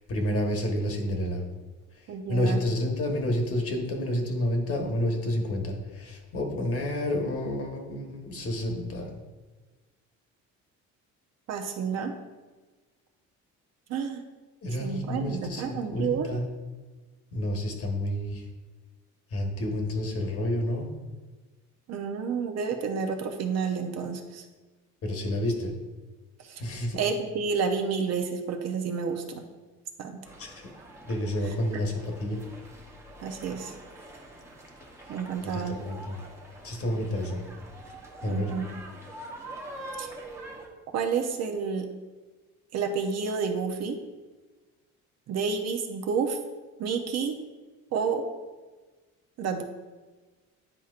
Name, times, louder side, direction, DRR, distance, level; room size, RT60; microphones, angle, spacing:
voice 1, 0.0-1.4 2.3-9.1 14.6-16.5 17.3-18.4 19.3-20.9 25.0-25.7 26.6-27.0 30.4-30.7 31.0-32.4 35.4-36.2 36.6-37.4 38.2-38.5, left 1 dB, 45° left, 1 dB, 1.3 m, -29 dB
voice 2, 2.1-2.6 11.5-12.1 13.9-14.2 14.8-16.3 21.9-24.4 26.5-26.6 27.0-29.4 30.0-30.2 33.2-33.7 35.1-35.8 38.3-38.7 40.0-40.1 40.9-41.9 42.7-44.0 45.3-46.4 46.8-47.3 47.9-48.2 49.4-49.6, right 5 dB, 55° right, 4 dB, 0.8 m, -30 dB
sound 1, 30.2-40.7, right 2 dB, 10° right, 0.9 m, -45 dB
10.0 x 4.3 x 2.5 m, 1.3 s
cardioid pair, 130°, 31 cm